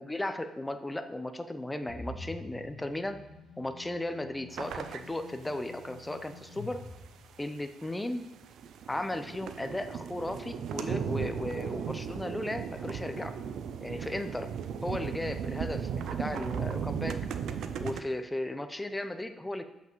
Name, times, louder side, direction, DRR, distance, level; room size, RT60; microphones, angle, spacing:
voice 1, 0.0-3.2 3.6-6.8 7.4-8.3 8.9-13.3 13.8-14.5 14.8-17.2 17.8-19.7, left 1 dB, 15° left, 9 dB, 0.5 m, -35 dB
sound 1, 1.9-7.9, left 2 dB, 60° left, 1.4 m, -47 dB
sound 2, 4.5-5.0 5.5-5.6 6.2-6.3 7.8-7.9 8.1-18.0, right 7 dB, 75° right, 0.4 m, -36 dB
7.4 x 5.8 x 3.0 m, 0.93 s
cardioid pair, 90°, 0 cm